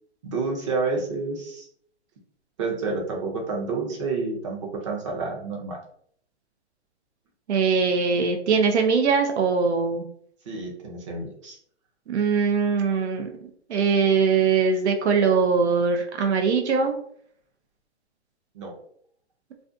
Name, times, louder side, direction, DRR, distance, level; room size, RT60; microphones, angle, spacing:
voice 1, 0.2-1.7 2.6-5.8 10.5-11.6 18.5-18.7, right 4 dB, 30° right, 0 dB, 0.6 m, -29 dB
voice 2, 7.5-10.0 12.1-13.3 13.7-17.0, right 5 dB, 80° right, 4 dB, 0.6 m, -21 dB
2.4 x 2.3 x 2.5 m, 0.63 s
hypercardioid pair, 145°, 34 cm